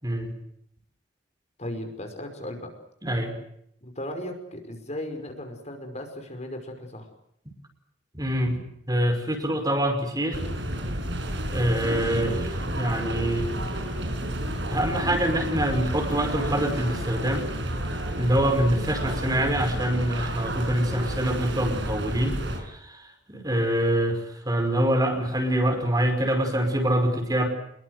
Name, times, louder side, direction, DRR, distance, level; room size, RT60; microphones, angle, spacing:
voice 1, 0.0-0.4 3.0-3.4 8.1-8.6 8.9-10.4 11.5-13.5 14.7-17.4 18.2-22.4 22.6-27.5, right 1 dB, 20° right, 6 dB, 5.4 m, -25 dB
voice 2, 1.6-2.7 3.8-7.1, left 1 dB, 40° left, 5 dB, 5.3 m, -36 dB
sound 1, 10.3-22.6, right 1 dB, 75° right, 6.6 m, -31 dB
26.0 x 22.5 x 8.0 m, 0.72 s
head